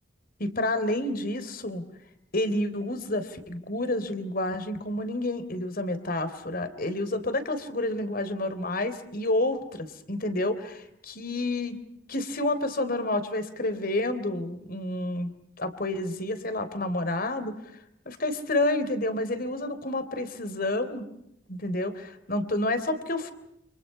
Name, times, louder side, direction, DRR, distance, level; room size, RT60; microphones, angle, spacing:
voice 1, 0.4-1.8 2.3-11.8 12.1-17.5 18.1-21.1 21.5-21.9 22.3-23.3, left 1 dB, 50° left, 11 dB, 3.6 m, -29 dB
30.0 x 28.0 x 5.7 m, 0.77 s
head